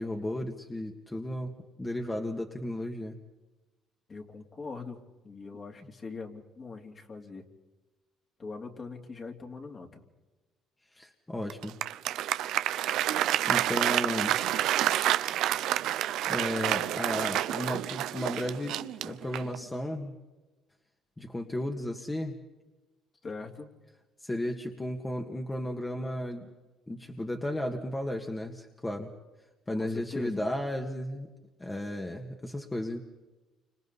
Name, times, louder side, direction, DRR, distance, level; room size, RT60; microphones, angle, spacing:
voice 1, 0.0-1.5 1.8-3.2 10.9-11.8 13.5-14.4 15.7-15.9 16.3-20.1 21.2-22.4 24.2-26.5 26.9-29.1 29.7-31.3 31.6-33.0, left 1 dB, 15° left, 2 dB, 2.0 m, -34 dB
voice 2, 4.1-7.4 8.4-10.0 23.2-23.7 29.8-30.4, left 4 dB, 35° left, 2 dB, 3.1 m, -42 dB
Applause, 11.5-19.6, right 13 dB, 75° right, 0.7 m, -29 dB
29.5 x 26.5 x 4.2 m, 1.2 s
cardioid pair, 90°, 0 cm